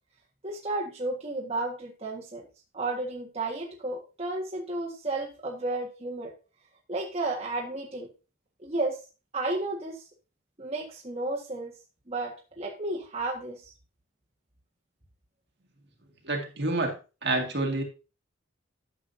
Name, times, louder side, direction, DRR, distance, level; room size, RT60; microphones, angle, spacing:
voice 1, 0.4-2.5 2.7-6.3 6.9-8.1 8.6-9.0 9.3-10.0 10.6-11.7 12.1-13.7, right 2 dB, 30° right, -3 dB, 1.6 m, -32 dB
voice 2, 16.2-17.0 17.2-17.8, right 2 dB, 55° right, 2 dB, 2.0 m, -28 dB
11.5 x 7.5 x 2.7 m, 0.31 s
head